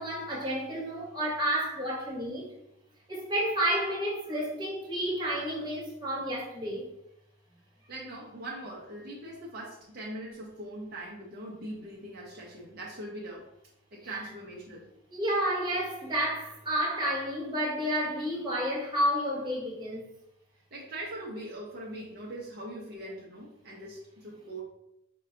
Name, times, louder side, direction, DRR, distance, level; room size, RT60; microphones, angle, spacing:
voice 1, 0.0-2.5 3.1-6.9 14.0-14.2 15.1-20.1, equal, 20° right, 1.0 m, -30 dB
voice 2, 7.9-13.5 13.9-14.9 20.7-24.6, right 1 dB, 50° right, 0.6 m, -41 dB
4.6 x 2.2 x 3.7 m
head